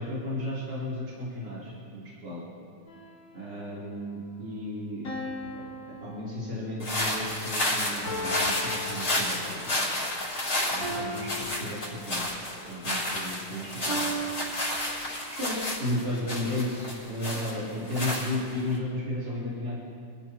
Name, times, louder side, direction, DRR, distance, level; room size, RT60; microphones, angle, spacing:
voice 1, 0.0-2.4 3.3-5.1 5.5-9.7 10.7-12.2 12.7-13.7 14.0-14.1 15.0-19.8, left 1 dB, 55° right, -9 dB, 4.4 m, -34 dB
sound 1, 2.9-3.7 5.0-6.9 8.0-9.7 10.8-12.5 13.9-15.5, equal, 80° left, 3.3 m, -38 dB
sound 2, 6.8-18.7, left 1 dB, 60° left, 6.1 m, -31 dB
26.5 x 14.5 x 3.1 m, 2.2 s
omnidirectional pair, 2.0 m